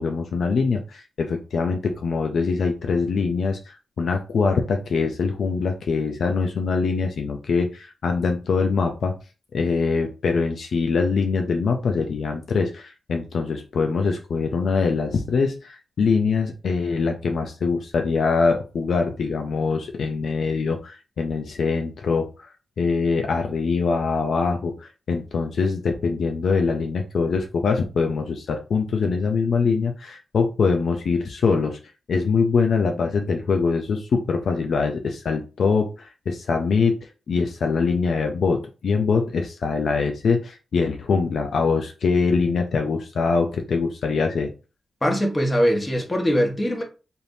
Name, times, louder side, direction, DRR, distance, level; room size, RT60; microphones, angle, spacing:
voice 1, 0.0-9.2 9.5-22.5 22.8-31.8 32.1-37.0 37.3-44.5, left 4 dB, 70° left, 0.6 m, -23 dB
voice 2, 45.0-46.8, equal, 20° left, 1.4 m, -21 dB
4.3 x 3.5 x 2.7 m
cardioid pair, 80°, 0 cm